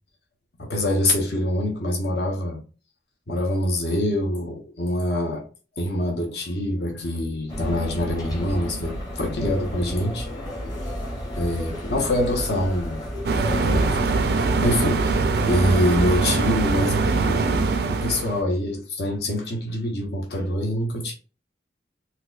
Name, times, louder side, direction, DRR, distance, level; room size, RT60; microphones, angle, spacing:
voice 1, 0.6-2.6 3.3-5.4 5.8-10.3 11.3-13.0 13.5-14.0 14.6-21.1, left 1 dB, 55° left, 0.7 m, -25 dB
sound 1, 7.5-16.0, equal, 20° left, 0.8 m, -32 dB
sound 2, 13.3-18.4, right 3 dB, 55° right, 0.4 m, -22 dB
4.2 x 2.2 x 2.4 m
head